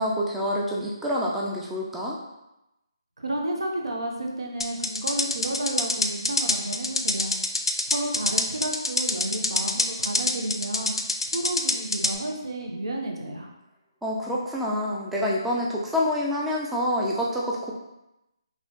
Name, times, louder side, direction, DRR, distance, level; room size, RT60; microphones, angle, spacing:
voice 1, 0.0-2.2 9.3-9.4 14.0-17.7, left 1 dB, 5° right, -4 dB, 0.3 m, -27 dB
voice 2, 3.2-7.3 7.9-10.9 11.3-13.5, right 1 dB, 80° right, 1 dB, 0.7 m, -31 dB
sound 1, 4.6-12.2, left 2 dB, 80° left, 0.4 m, -26 dB
3.0 x 2.9 x 3.0 m, 0.92 s
figure-of-eight pair, 150°, 3 cm